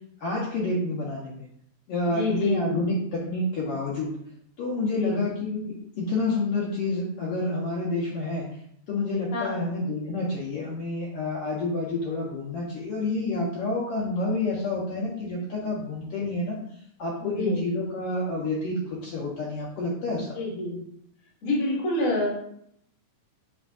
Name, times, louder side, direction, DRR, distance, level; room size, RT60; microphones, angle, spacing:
voice 1, 0.2-1.4 1.9-4.1 4.6-8.5 8.9-16.6 17.0-20.4, left 2 dB, 85° left, -4 dB, 1.3 m, -29 dB
voice 2, 2.0-2.9 4.9-5.2 9.3-9.6 17.2-17.6 20.3-20.8 21.4-22.3, left 1 dB, 45° left, -5 dB, 1.0 m, -27 dB
6.0 x 3.5 x 2.3 m, 0.71 s
omnidirectional pair, 3.6 m